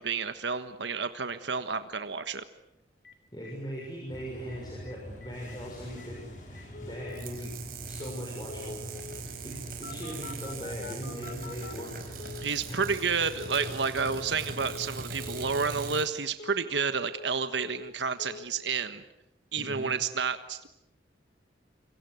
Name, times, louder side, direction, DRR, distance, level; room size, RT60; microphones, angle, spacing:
voice 1, 0.0-2.4 12.4-19.0 19.5-20.7, right 5 dB, 85° right, 10 dB, 1.4 m, -30 dB
Telephone, 3.0-3.1 3.4-3.5 3.8-3.9 4.1-4.6 4.9-5.0 5.2-5.6 6.0-6.1 6.5-7.2 8.0-8.2 8.5-9.2 9.8-12.5 12.8-13.1 13.4-13.7 14.0-14.3 14.6-14.9 15.2-15.5 15.8-16.1 16.4-17.3 17.6-17.9 18.2-18.4, left 4 dB, 60° left, 3.7 m, -45 dB
voice 2, 3.3-7.6 7.9-8.8 9.4-12.0 12.7-12.9 19.6-19.9, equal, 25° left, -2 dB, 6.2 m, -40 dB
sound 1, 4.1-15.9, equal, 45° left, 6.5 m, -46 dB
sound 2, 7.1-16.1, right 4 dB, 55° right, 4.9 m, -41 dB
27.5 x 24.5 x 8.0 m, 0.85 s
head